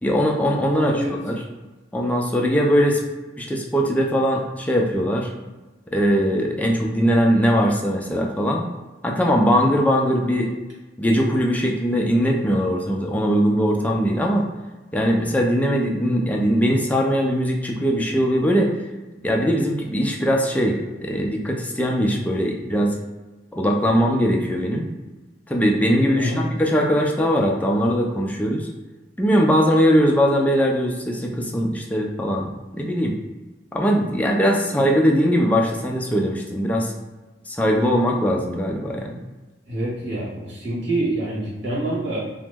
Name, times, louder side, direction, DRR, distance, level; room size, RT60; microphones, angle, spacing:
voice 1, 0.0-1.4 1.9-3.0 3.4-5.3 5.9-8.7 9.0-10.5 11.0-14.4 14.9-18.7 19.2-23.0 23.5-24.9 25.5-28.7 29.2-33.1 33.7-36.9 37.5-39.2, equal, 10° left, 0 dB, 0.3 m, -20 dB
voice 2, 0.7-1.1 26.1-26.5 34.7-34.8 39.7-42.2, right 1 dB, 70° right, -7 dB, 1.4 m, -26 dB
2.9 x 2.1 x 3.4 m, 1.2 s
head